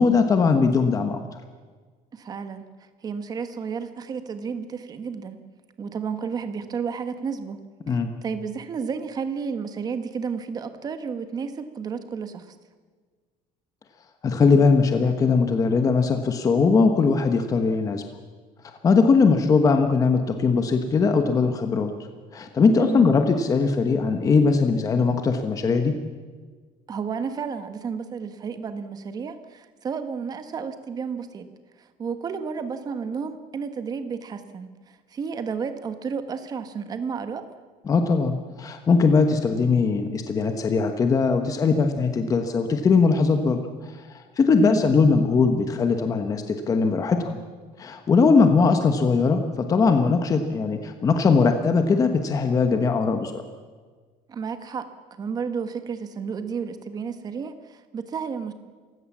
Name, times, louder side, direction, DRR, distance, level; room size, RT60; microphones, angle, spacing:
voice 1, 0.0-1.4 7.9-8.1 14.2-18.0 18.8-21.9 22.3-26.0 37.9-43.6 44.1-47.4 47.8-53.4, left 4 dB, 20° left, 6 dB, 1.2 m, -20 dB
voice 2, 2.1-5.4 5.8-7.6 7.9-12.5 22.8-23.1 26.9-31.5 31.8-37.4 44.6-44.9 54.3-58.5, right 6 dB, 25° right, 9 dB, 1.3 m, -32 dB
28.0 x 16.0 x 7.4 m, 1.5 s
cardioid pair, 175°, 16 cm